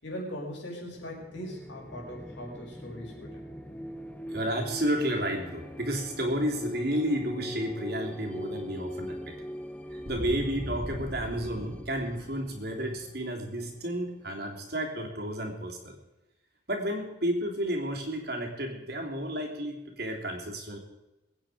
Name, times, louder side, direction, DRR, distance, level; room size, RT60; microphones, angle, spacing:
voice 1, 0.0-3.4, equal, 75° left, -2 dB, 5.8 m, -40 dB
sound 1, 0.8-14.3, equal, 5° left, 0.8 m, -41 dB
voice 2, 4.3-9.4 9.9-16.0 16.7-20.8, equal, 55° right, 1 dB, 3.2 m, -31 dB
22.5 x 9.4 x 5.0 m, 1.0 s
head